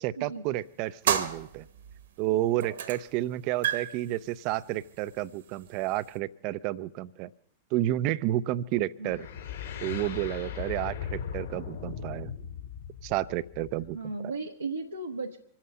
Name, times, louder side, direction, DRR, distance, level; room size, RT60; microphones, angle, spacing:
voice 1, 0.0-1.6 2.2-7.3 7.7-9.3 9.8-12.3 13.0-14.0, right 15 dB, 45° right, 18 dB, 0.5 m, -30 dB
sound 1, 1.1-2.1 2.6-3.1 3.4-6.2, right 9 dB, 65° right, 1.3 m, -32 dB
sound 2, 9.1-13.9, left 8 dB, 70° left, 5.1 m, -38 dB
voice 2, 13.9-15.4, right 3 dB, 90° right, -2 dB, 1.0 m, -36 dB
25.5 x 8.7 x 5.6 m, 0.69 s
figure-of-eight pair, 95°, 0 cm